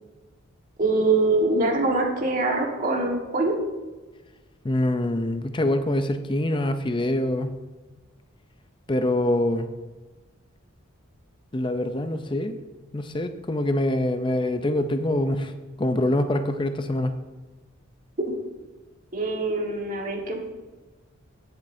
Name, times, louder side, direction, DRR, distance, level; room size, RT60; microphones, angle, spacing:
voice 1, 0.8-3.5 19.1-20.4, right 2 dB, 40° right, 0 dB, 1.6 m, -23 dB
voice 2, 4.6-7.6 8.9-9.7 11.5-12.6 12.9-15.5 15.8-17.1, left 1 dB, 25° left, 8 dB, 0.5 m, -25 dB
16.0 x 7.4 x 2.7 m, 1.2 s
head